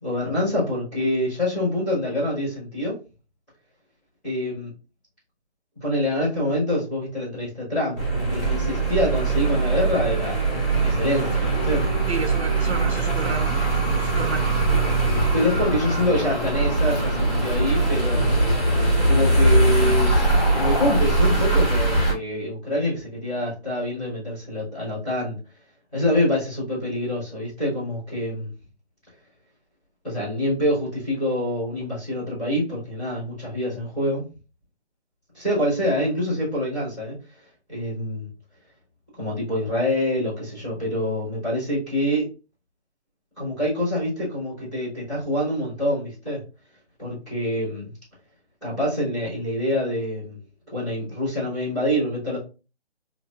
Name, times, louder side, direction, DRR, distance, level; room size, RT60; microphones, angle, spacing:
voice 1, 0.0-3.0 4.2-4.7 5.8-10.5 10.8-11.9 15.3-18.3 19.0-25.4 25.9-28.5 30.0-34.2 35.3-37.2 37.7-38.3 39.2-42.3 43.4-46.4 47.0-47.9 48.6-50.4 50.7-52.4, left 1 dB, ahead, 1.9 m, -26 dB
sound 1, 8.0-22.1, right 2 dB, 25° left, 1.8 m, -21 dB
voice 2, 12.1-13.6 13.9-14.5, right 4 dB, 75° right, 0.7 m, -31 dB
4.1 x 2.9 x 2.5 m
hypercardioid pair, 180°, 33 cm